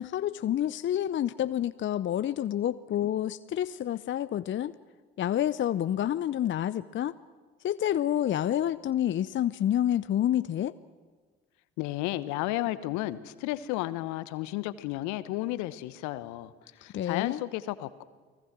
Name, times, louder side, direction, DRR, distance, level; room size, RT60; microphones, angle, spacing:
voice 1, 0.0-4.7 5.2-7.1 7.6-10.7 16.8-17.4, left 11 dB, 40° left, 15 dB, 0.7 m, -28 dB
voice 2, 11.8-18.0, left 16 dB, 65° left, 15 dB, 1.2 m, -33 dB
30.0 x 19.5 x 6.1 m, 1.5 s
figure-of-eight pair, 55°, 32 cm